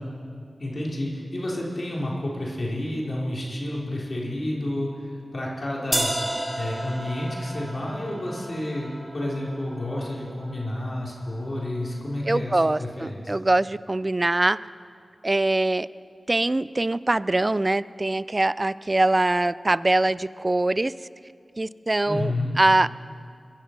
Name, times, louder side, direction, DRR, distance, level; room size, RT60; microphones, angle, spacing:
voice 1, 0.6-6.1 6.6-13.4 22.1-22.5, left 1 dB, 55° left, -4 dB, 3.8 m, -30 dB
sound 1, 5.9-11.9, right 1 dB, 20° right, 2.1 m, -33 dB
voice 2, 12.3-14.6 15.2-15.9 16.3-20.9 21.6-22.3 22.6-22.9, right 2 dB, 35° right, 18 dB, 0.4 m, -23 dB
22.5 x 10.5 x 5.8 m, 2.4 s
cardioid pair, 40°, 0 cm